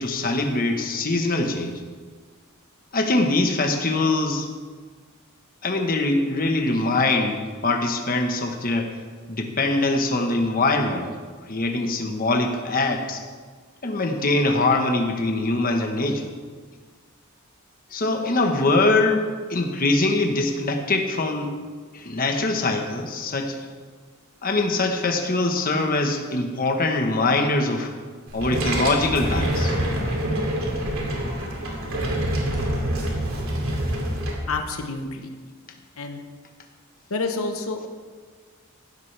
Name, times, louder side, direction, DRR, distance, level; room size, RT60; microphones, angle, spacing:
voice 1, 0.0-1.8 2.9-4.5 5.6-8.9 9.3-11.1 11.5-13.2 13.8-16.3 17.9-21.5 21.9-23.5 24.4-27.9 28.3-29.8, left 2 dB, 45° left, 3 dB, 1.2 m, -23 dB
sound 1, 28.3-34.3, right 1 dB, 85° right, 2.7 m, -26 dB
voice 2, 34.5-35.3 36.0-36.2 37.1-37.9, left 3 dB, 85° left, 5 dB, 1.1 m, -28 dB
16.0 x 12.5 x 3.4 m, 1.5 s
head